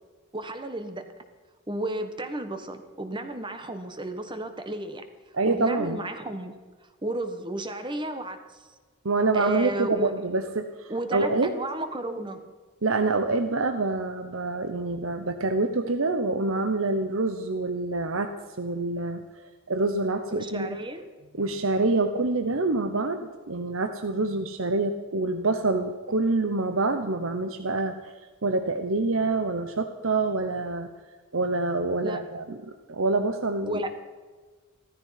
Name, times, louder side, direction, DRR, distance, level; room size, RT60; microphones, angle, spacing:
voice 1, 0.3-1.1 1.7-5.0 5.4-6.6 7.0-8.7 9.3-10.1 10.9-12.5 20.3-21.0 32.0-32.4 33.7-33.9, right 1 dB, 20° right, 8 dB, 1.4 m, -33 dB
voice 2, 5.3-6.0 9.0-11.5 12.8-19.2 19.7-20.7 21.4-28.1 28.4-30.9 31.3-32.6 32.9-33.9, right 3 dB, 65° right, 7 dB, 1.0 m, -26 dB
15.5 x 13.5 x 5.8 m, 1.4 s
head